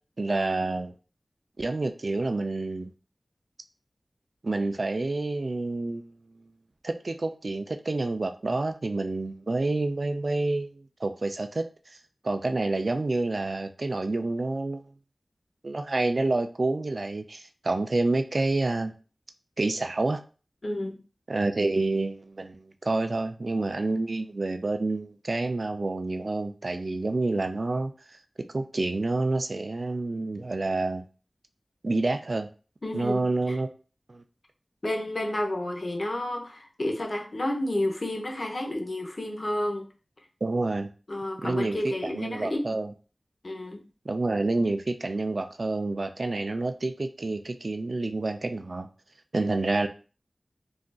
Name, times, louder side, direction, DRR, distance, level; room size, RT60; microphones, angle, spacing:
voice 1, 0.2-0.9 1.6-2.9 4.4-6.0 6.8-10.8 11.0-11.6 12.2-14.8 15.6-18.9 19.6-20.2 21.3-28.2 28.5-31.0 31.8-32.5 32.9-33.7 34.1-34.2 40.4-40.9 41.4-42.9 44.1-48.9 49.3-49.9, right 2 dB, 55° right, 7 dB, 0.3 m, -28 dB
voice 2, 20.6-21.0 32.8-33.6 34.8-39.9 41.1-42.7 43.4-43.9, left 1 dB, 50° left, 2 dB, 0.7 m, -31 dB
3.7 x 2.4 x 2.2 m, 0.35 s
wide cardioid pair, 70°, 0 cm